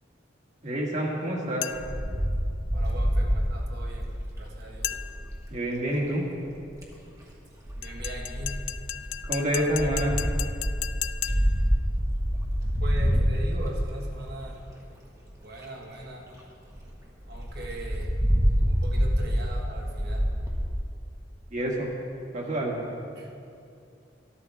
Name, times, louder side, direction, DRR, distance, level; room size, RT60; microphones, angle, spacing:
voice 1, 0.6-1.6 5.5-6.2 9.3-10.2 21.5-21.9 22.3-22.8, right 1 dB, 40° right, -2 dB, 2.0 m, -27 dB
sound 1, 1.6-2.1 4.8-5.3 7.8-11.7, left 14 dB, 85° left, 0.3 m, -35 dB
Wind, 1.7-5.4 6.5-6.9 7.7-14.6 15.2-15.3 15.6-15.7 16.0-16.1 16.4-16.5 16.7-16.9 17.3-20.6, equal, 20° right, 1.5 m, -27 dB
voice 2, 2.7-4.1 4.4-5.0 7.8-8.6 9.5-9.7 12.8-14.6 15.4-16.3 17.3-18.1 18.6-20.3 23.1-23.3, right 1 dB, 60° right, -1 dB, 1.6 m, -40 dB
13.0 x 12.5 x 3.5 m, 2.5 s
head